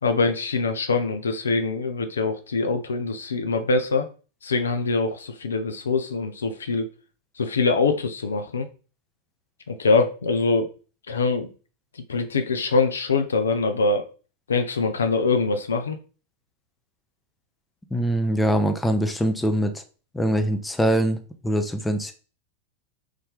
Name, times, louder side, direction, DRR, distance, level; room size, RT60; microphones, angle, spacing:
voice 1, 0.0-4.1 4.4-6.9 7.4-8.7 9.7-10.7 11.1-11.5 11.9-14.1 14.5-16.0, left 4 dB, 70° left, 7 dB, 0.5 m, -23 dB
voice 2, 17.9-19.7 20.1-22.1, equal, 5° left, 6 dB, 0.5 m, -23 dB
3.2 x 2.7 x 3.4 m, 0.36 s
figure-of-eight pair, 90°, 0 cm